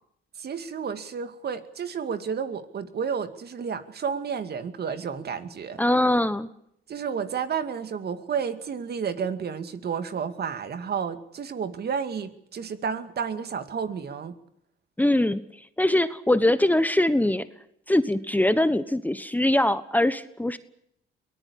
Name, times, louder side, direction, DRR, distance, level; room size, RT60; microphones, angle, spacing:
voice 1, 0.4-5.8 6.9-14.3, right 6 dB, 55° right, 10 dB, 2.3 m, -31 dB
voice 2, 5.8-6.5 15.0-15.4 15.8-17.5 17.9-20.6, left 1 dB, 10° left, 13 dB, 1.2 m, -22 dB
23.5 x 19.0 x 8.6 m, 0.74 s
cardioid pair, 90°, 20 cm